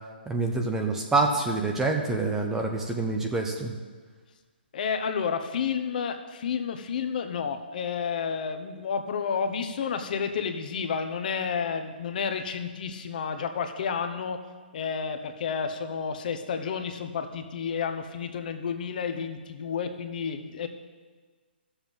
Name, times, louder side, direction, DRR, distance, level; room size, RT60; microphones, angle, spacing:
voice 1, 0.3-3.7, right 3 dB, 5° right, 2 dB, 0.7 m, -26 dB
voice 2, 4.7-14.4 14.7-20.7, left 6 dB, 50° left, 7 dB, 0.9 m, -31 dB
13.0 x 7.2 x 5.4 m, 1.4 s
hypercardioid pair, 160°, 6 cm